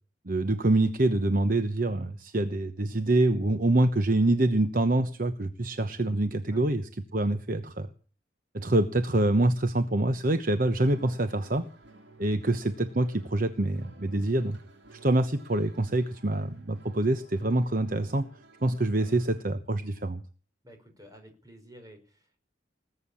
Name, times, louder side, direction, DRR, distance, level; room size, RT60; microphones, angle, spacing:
voice 1, 0.3-7.9 8.5-11.6 12.2-14.6 14.9-18.3 18.6-20.2, right 2 dB, 45° right, 10 dB, 1.0 m, -26 dB
sound 1, 10.5-19.4, right 2 dB, 70° right, 3.8 m, -55 dB
voice 2, 20.6-22.4, equal, 20° right, 4 dB, 5.0 m, -51 dB
20.0 x 8.0 x 8.6 m, 0.40 s
head